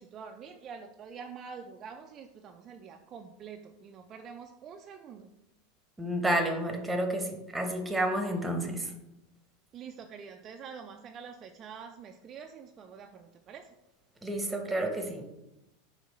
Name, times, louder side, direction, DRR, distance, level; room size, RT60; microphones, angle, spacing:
voice 1, 0.0-5.3 9.7-13.7, right 6 dB, 40° right, 5 dB, 0.3 m, -46 dB
voice 2, 6.0-8.9 14.2-15.3, right 1 dB, 10° right, 4 dB, 0.9 m, -30 dB
5.1 x 3.2 x 3.1 m, 0.91 s
hypercardioid pair, 90°, 0 cm